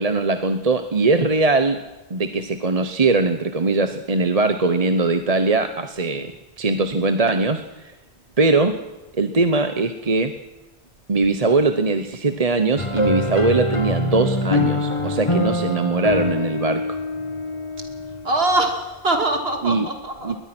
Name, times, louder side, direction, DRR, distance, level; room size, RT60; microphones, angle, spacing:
voice 1, 0.0-1.8 2.1-6.3 6.6-7.9 8.4-8.7 9.1-10.3 11.1-17.0 19.6-19.9 20.2-20.4, right 3 dB, 35° right, 8 dB, 1.1 m, -21 dB
sound 1, 12.8-18.4, left 2 dB, 30° left, 1.9 m, -24 dB
voice 2, 18.2-20.3, right 2 dB, 65° right, 4 dB, 2.8 m, -22 dB
22.0 x 20.0 x 6.1 m, 1.0 s
omnidirectional pair, 1.1 m